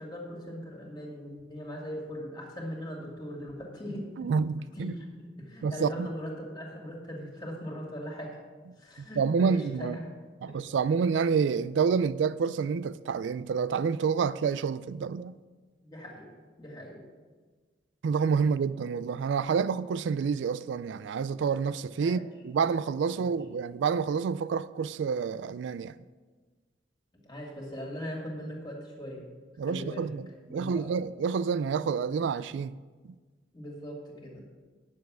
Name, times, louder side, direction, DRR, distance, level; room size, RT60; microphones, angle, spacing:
voice 1, 0.0-4.3 4.8-5.1 5.4-8.4 8.8-10.1 10.5-10.7 15.8-16.3 16.6-17.0 22.0-22.3 23.1-23.3 27.2-29.2 29.6-30.1 30.5-30.9 33.5-34.4, equal, 25° left, 2.4 m, -40 dB
voice 2, 4.2-4.9 5.6-6.1 9.2-10.0 10.4-15.4 18.0-26.0 29.6-32.8, right 6 dB, 80° right, 0.3 m, -28 dB
10.5 x 7.1 x 6.2 m
head